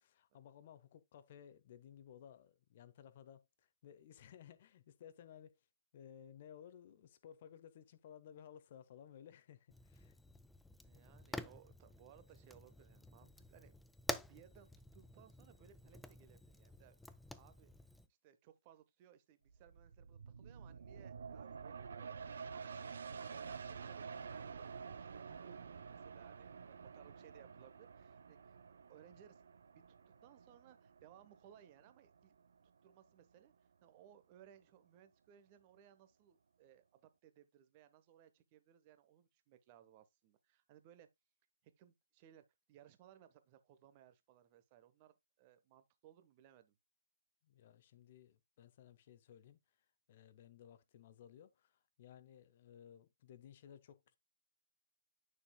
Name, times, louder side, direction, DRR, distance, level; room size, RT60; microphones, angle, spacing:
voice 1, 0.0-5.6 5.9-10.2 47.4-49.6 50.1-54.2, left 9 dB, 35° left, 1.0 m, -58 dB
Fire, 9.7-18.1, left 2 dB, 5° left, 0.4 m, -49 dB
voice 2, 10.8-13.7 14.1-17.7 18.1-22.5 22.9-24.5 24.9-28.6 28.9-32.3 32.8-41.1 41.6-46.8, right 10 dB, 25° right, 1.0 m, -64 dB
sound 1, 19.5-32.8 33.2-33.3, right 6 dB, 55° right, 0.8 m, -50 dB
8.9 x 6.5 x 2.2 m
figure-of-eight pair, 130°, 0 cm